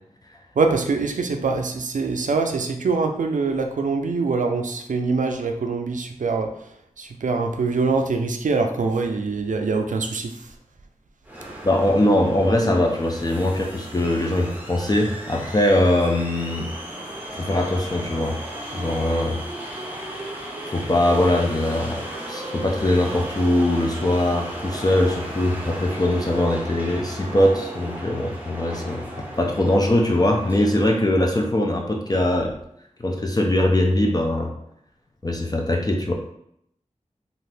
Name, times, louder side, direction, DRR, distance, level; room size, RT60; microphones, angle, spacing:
voice 1, 0.6-6.5 7.0-10.5, right 4 dB, 85° right, 4 dB, 0.4 m, -24 dB
sound 1, 11.2-31.1, right 1 dB, 10° right, 0.7 m, -35 dB
voice 2, 11.6-16.7 17.4-18.4 18.7-19.4 20.7-32.5 33.0-34.5 35.2-36.1, left 1 dB, 30° left, 1 dB, 0.4 m, -21 dB
2.7 x 2.4 x 3.3 m, 0.73 s
wide cardioid pair, 65°, 13 cm